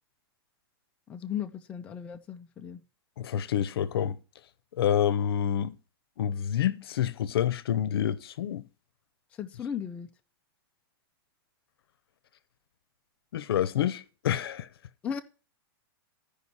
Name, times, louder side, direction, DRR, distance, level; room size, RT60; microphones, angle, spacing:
voice 1, 1.1-2.8 9.4-10.1 15.0-15.2, left 8 dB, 10° left, 0.4 m, -36 dB
voice 2, 3.2-4.2 4.8-5.8 6.2-8.6 13.3-14.7, left 9 dB, 75° left, 0.7 m, -28 dB
14.0 x 5.3 x 4.1 m
supercardioid pair, 165°, 13 cm